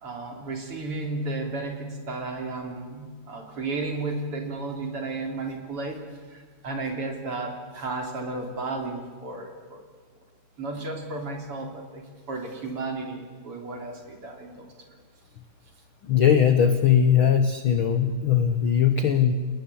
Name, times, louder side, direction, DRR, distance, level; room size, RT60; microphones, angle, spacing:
voice 1, 0.0-9.9 10.6-14.7, right 3 dB, 40° right, 3 dB, 4.1 m, -33 dB
voice 2, 16.0-19.3, left 8 dB, 60° left, 9 dB, 1.3 m, -20 dB
29.5 x 19.5 x 8.6 m, 1.5 s
omnidirectional pair, 4.0 m